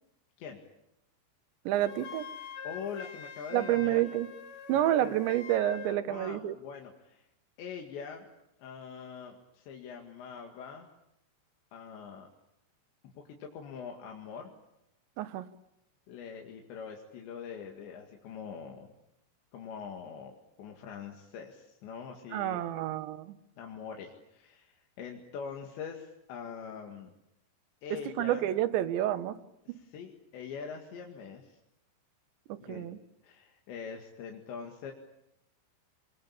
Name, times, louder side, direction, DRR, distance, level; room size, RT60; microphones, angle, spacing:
voice 1, 1.7-2.3 3.5-4.3 4.7-6.6 15.2-15.5 22.3-23.4 28.1-29.4 29.7-29.8 32.5-33.0, right 12 dB, 85° right, 10 dB, 3.5 m, -29 dB
Wind instrument woodwind instrument, 1.8-6.0, left 6 dB, 60° left, 2.0 m, -44 dB
voice 2, 2.6-4.0 4.7-5.2 6.1-7.3 7.6-8.3 8.6-10.9 11.7-12.3 13.0-14.5 16.1-18.9 19.5-22.6 23.6-27.1 27.8-28.5 29.7-31.6 32.6-32.9 33.2-34.9, left 6 dB, 80° left, 2 dB, 4.3 m, -43 dB
28.0 x 21.5 x 8.7 m, 0.85 s
omnidirectional pair, 5.1 m